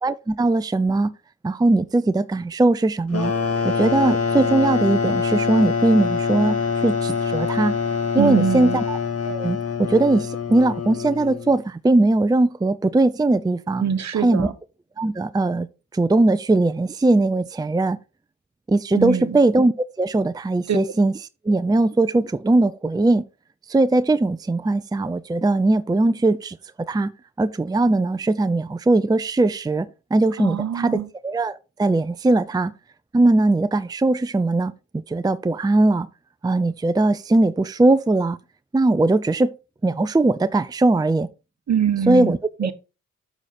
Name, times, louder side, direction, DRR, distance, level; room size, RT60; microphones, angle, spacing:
voice 1, 0.0-1.1 1.4-3.3 3.6-7.7 8.1-9.0 9.3-13.8 14.2-14.5 15.0-15.7 15.9-18.0 18.7-21.1 21.4-23.3 23.7-26.6 26.9-27.1 27.4-32.7 33.1-34.7 35.1-36.1 36.4-38.4 38.7-39.5 39.8-41.3 42.1-42.4, right 2 dB, 10° right, 0.5 m, -20 dB
sound 1, 3.1-11.6, left 5 dB, 45° left, 1.9 m, -24 dB
voice 2, 8.2-8.8 13.8-14.5 18.9-19.4 20.7-20.8 30.4-31.1 41.7-42.7, right 7 dB, 50° right, 1.1 m, -23 dB
7.3 x 6.6 x 4.2 m
cardioid pair, 65°, 35 cm